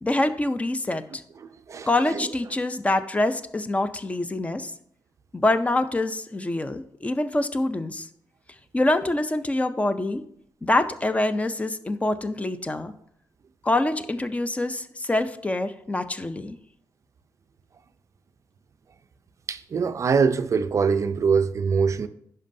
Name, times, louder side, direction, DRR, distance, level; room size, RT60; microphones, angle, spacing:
voice 1, 0.0-1.2 1.9-4.7 5.3-8.1 8.7-10.2 10.6-12.9 13.6-16.6, left 2 dB, 20° left, 0.4 m, -25 dB
voice 2, 1.4-2.3 19.5-22.1, right 5 dB, 45° right, 0.4 m, -23 dB
10.5 x 5.4 x 2.6 m
cardioid pair, 120°, 8 cm